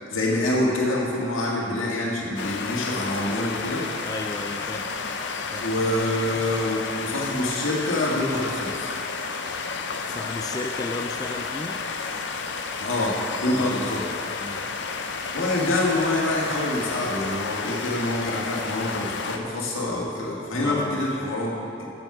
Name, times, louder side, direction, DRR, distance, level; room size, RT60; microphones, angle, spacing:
voice 1, 0.1-3.9 5.6-9.0 12.8-14.0 15.3-21.9, left 1 dB, 85° left, -3 dB, 1.7 m, -26 dB
sound 1, 2.4-19.4, left 4 dB, 60° left, 0.6 m, -31 dB
voice 2, 4.1-4.9 5.5-5.7 10.1-11.8 13.5-14.0 14.4-14.7 20.6-21.1, left 2 dB, 20° left, 4 dB, 0.3 m, -34 dB
7.8 x 7.5 x 5.9 m, 2.7 s
head